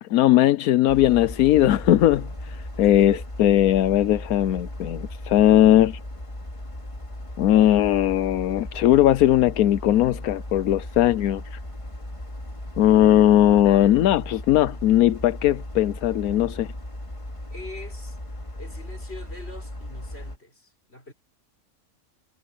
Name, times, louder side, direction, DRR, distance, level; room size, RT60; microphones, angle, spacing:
voice 1, 0.0-6.0 7.4-11.6 12.8-16.7, left 12 dB, 85° left, 1.1 m, -19 dB
sound 1, 0.9-20.4, left 1 dB, 20° left, 2.7 m, -37 dB
voice 2, 2.8-3.2 17.5-18.2 18.6-21.1, left 2 dB, 45° left, 6.2 m, -42 dB
omnidirectional pair, 1.5 m